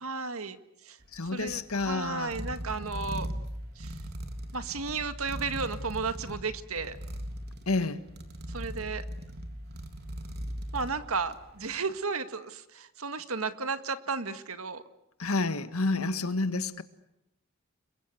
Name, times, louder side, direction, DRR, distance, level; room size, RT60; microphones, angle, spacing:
voice 1, 0.0-0.6 0.8-1.0 1.3-3.3 3.8-3.9 4.5-7.0 8.5-9.0 10.7-14.8, right 4 dB, 75° right, 10 dB, 1.9 m, -33 dB
sound 1, 1.0-11.6, equal, 50° right, 3.6 m, -39 dB
voice 2, 1.1-2.4 7.7-8.0 15.2-16.8, left 3 dB, 80° left, 12 dB, 1.6 m, -29 dB
30.0 x 23.0 x 8.2 m, 0.85 s
head